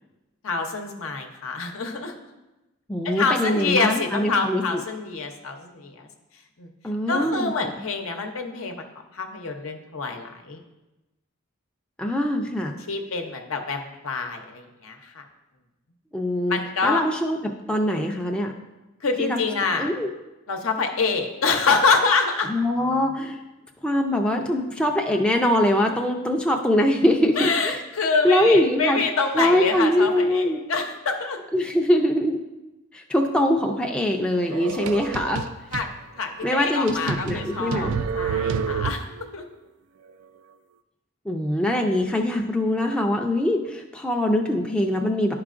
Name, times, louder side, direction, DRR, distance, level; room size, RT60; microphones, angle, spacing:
voice 1, 0.4-2.2 3.0-6.1 6.6-6.7 7.1-8.8 9.1-10.6 12.9-15.3 16.5-17.0 19.0-19.9 20.5-22.5 27.3-31.4 34.5-34.6 35.7-39.4, left 4 dB, 75° left, 4 dB, 0.8 m, -26 dB
voice 2, 2.9-4.6 6.8-7.5 12.0-12.8 16.1-18.5 19.2-19.4 19.8-20.1 22.5-23.4 23.8-27.8 28.2-29.0 29.3-30.6 31.5-32.4 32.9-35.4 36.4-38.0 41.3-45.3, left 1 dB, 5° left, 1 dB, 0.4 m, -23 dB
sound 1, 34.5-35.9 36.4-36.5 36.9-39.3, right 6 dB, 90° right, 0.4 m, -28 dB
11.5 x 4.7 x 2.5 m, 1.0 s
head